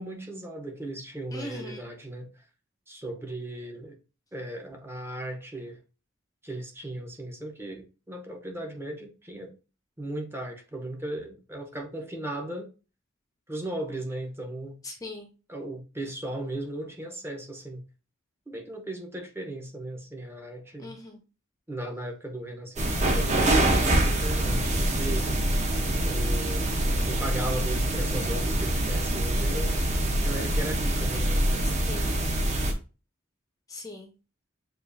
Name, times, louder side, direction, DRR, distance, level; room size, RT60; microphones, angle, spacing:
voice 1, 0.0-2.4 2.9-3.9 4.3-5.8 6.4-9.5 10.0-12.7 13.5-14.8 15.5-17.8 18.5-20.9 21.7-25.3 26.0-26.7 27.0-29.9 30.2-31.6, right 1 dB, 10° right, 0.8 m, -37 dB
voice 2, 1.3-1.8 14.8-15.3 20.8-21.2 31.9-32.2 33.7-34.1, left 2 dB, 20° left, 0.7 m, -40 dB
sound 1, 22.8-32.7, right 1 dB, 35° right, 0.9 m, -25 dB
6.7 x 2.5 x 2.7 m
head